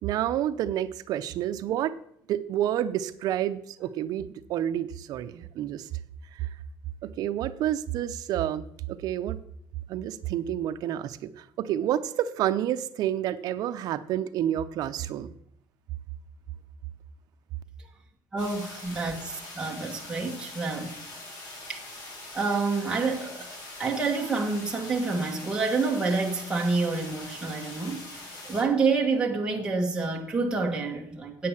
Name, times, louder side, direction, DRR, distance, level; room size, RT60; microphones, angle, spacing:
voice 1, 0.0-2.0 2.3-5.9 6.3-6.5 7.0-9.4 9.9-15.3, right 11 dB, 65° right, 11 dB, 0.7 m, -29 dB
voice 2, 18.3-21.0 21.7-21.8 22.3-23.5 23.8-31.5, right 4 dB, 10° right, -2 dB, 1.3 m, -28 dB
sound 1, 18.4-28.6, left 2 dB, 60° left, 3.8 m, -43 dB
8.5 x 8.4 x 7.2 m, 0.70 s
cardioid pair, 160°, 7 cm